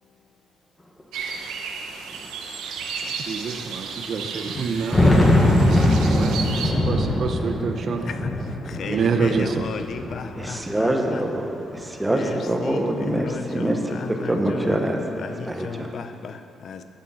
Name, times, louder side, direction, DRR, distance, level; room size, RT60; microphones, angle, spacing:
sound 1, 1.0-1.1 1.3-1.4 2.2-2.3 2.8-2.9 4.6-10.9 11.4-12.3, left 1 dB, 20° left, 1.2 m, -22 dB
sound 2, 1.1-6.7, right 5 dB, 85° right, 0.8 m, -33 dB
voice 1, 3.0-8.1 8.9-9.7, right 5 dB, 55° right, 0.7 m, -27 dB
voice 2, 8.6-11.2 12.1-14.8 15.2-16.8, left 6 dB, 60° left, 0.6 m, -35 dB
voice 3, 10.4-15.9, right 1 dB, 10° right, 1.0 m, -25 dB
9.4 x 6.8 x 6.1 m
cardioid pair, 90°, 0 cm